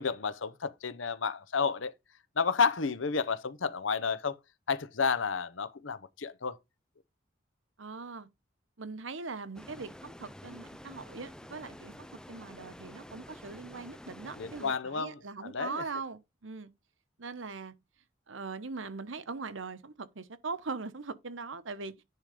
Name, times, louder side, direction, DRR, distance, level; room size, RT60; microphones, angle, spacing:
voice 1, 0.0-1.9 2.4-4.4 4.7-6.6 14.4-15.8, left 5 dB, 85° left, 0.8 m, -31 dB
voice 2, 7.8-8.3 8.8-16.7 17.2-17.7 18.3-21.9, right 4 dB, 85° right, 1.0 m, -41 dB
sound 1, 9.5-14.8, left 1 dB, 5° left, 0.5 m, -49 dB
10.5 x 3.7 x 5.0 m
head